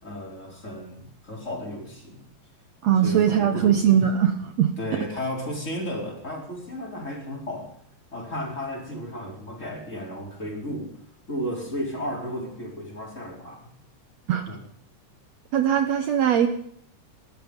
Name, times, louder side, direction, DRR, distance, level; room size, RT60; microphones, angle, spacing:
voice 1, 0.0-2.2 3.0-4.0 4.8-7.7 8.1-11.0 11.3-13.7 14.5-14.6, equal, 20° left, 0 dB, 4.7 m, -34 dB
voice 2, 2.8-4.7 14.3-14.4 15.5-16.5, right 9 dB, 65° right, 7 dB, 2.0 m, -20 dB
20.5 x 13.5 x 5.3 m, 0.65 s
omnidirectional pair, 3.7 m